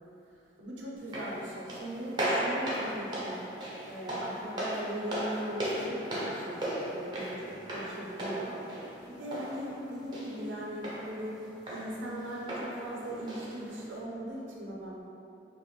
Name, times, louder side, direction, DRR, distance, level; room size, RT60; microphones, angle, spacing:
voice 1, 0.6-3.4 3.9-11.4 11.7-15.0, right 1 dB, 85° right, -4 dB, 0.8 m, -39 dB
sound 1, 1.0-14.0, right 1 dB, 25° right, 0.7 m, -37 dB
5.4 x 2.5 x 3.2 m, 2.6 s
head